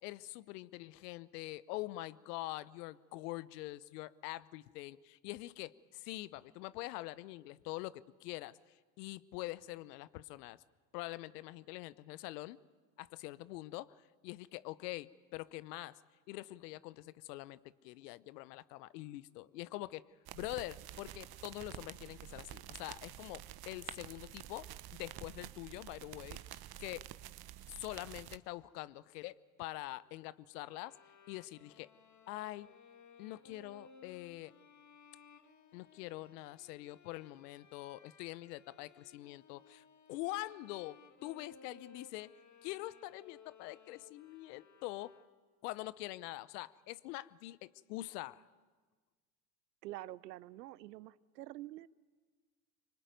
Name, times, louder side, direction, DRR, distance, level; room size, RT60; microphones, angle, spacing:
voice 1, 0.0-10.6 10.9-12.6 13.0-14.0 14.2-16.0 16.3-20.0 20.3-24.7 24.9-27.0 27.7-31.0 31.3-31.9 32.3-32.7 33.2-34.5 35.7-42.3 42.6-45.1 45.6-48.4, left 18 dB, 75° left, 19 dB, 0.9 m, -45 dB
sound 1, 20.3-28.4, right 13 dB, 50° right, 1.1 m, -49 dB
sound 2, 30.5-45.6, left 5 dB, 35° left, 2.1 m, -61 dB
voice 2, 49.8-51.9, right 16 dB, 85° right, 20 dB, 0.8 m, -47 dB
25.0 x 24.0 x 9.3 m, 1.4 s
hypercardioid pair, 65°, 48 cm